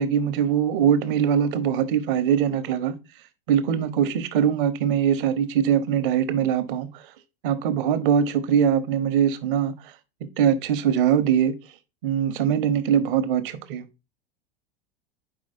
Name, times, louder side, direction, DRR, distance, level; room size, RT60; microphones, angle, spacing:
voice 1, 0.0-2.9 3.5-7.0 7.4-9.7 10.4-11.5 12.0-13.9, right 8 dB, 60° right, 1.0 m, -22 dB
4.8 x 4.7 x 4.3 m
figure-of-eight pair, 85°, 30 cm